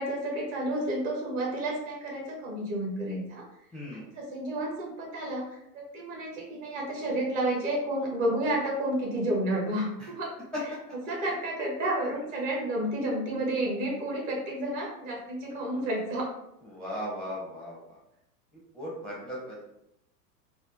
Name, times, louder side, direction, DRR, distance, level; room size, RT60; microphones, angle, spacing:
voice 1, 0.0-3.4 3.9-10.3 10.6-10.7 11.1-16.3, right 1 dB, 50° right, -2 dB, 1.4 m, -31 dB
voice 2, 3.7-4.0 10.0-10.1 16.7-18.0 18.7-19.6, equal, ahead, -7 dB, 0.6 m, -37 dB
3.5 x 2.1 x 2.7 m, 0.80 s
figure-of-eight pair, 90°, 49 cm